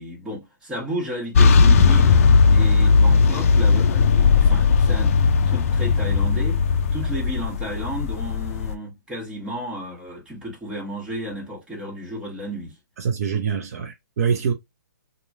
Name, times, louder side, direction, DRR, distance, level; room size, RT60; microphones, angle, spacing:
voice 1, 0.0-5.2 5.5-6.6 6.9-12.7, equal, 10° right, 1.2 m, -33 dB
sound 1, 1.4-8.7, left 5 dB, 45° left, 0.4 m, -17 dB
voice 2, 13.0-14.5, right 6 dB, 55° right, 0.6 m, -24 dB
3.0 x 2.2 x 2.5 m
hypercardioid pair, 140°, 10 cm